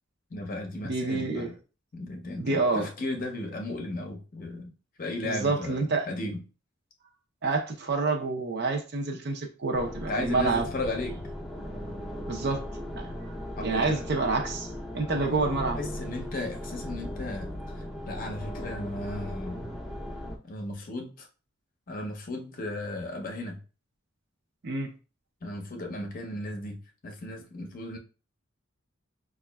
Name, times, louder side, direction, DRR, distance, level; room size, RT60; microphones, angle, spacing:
voice 1, 0.3-1.5 1.9-4.7 5.0-6.4 10.1-11.2 13.6-14.1 15.0-15.5 15.8-17.8 18.1-19.6 20.5-21.3 21.9-23.6 25.4-26.8 27.0-28.0, left 2 dB, 45° left, 2 dB, 0.6 m, -35 dB
voice 2, 0.8-1.5 2.4-2.9 5.2-6.1 7.4-10.6 12.3-12.6 13.0-13.3 13.6-15.8 24.6-24.9, right 3 dB, 55° right, 3 dB, 0.6 m, -28 dB
sound 1, 9.7-20.4, equal, ahead, 0.6 m, -37 dB
4.9 x 2.4 x 2.2 m, 0.35 s
head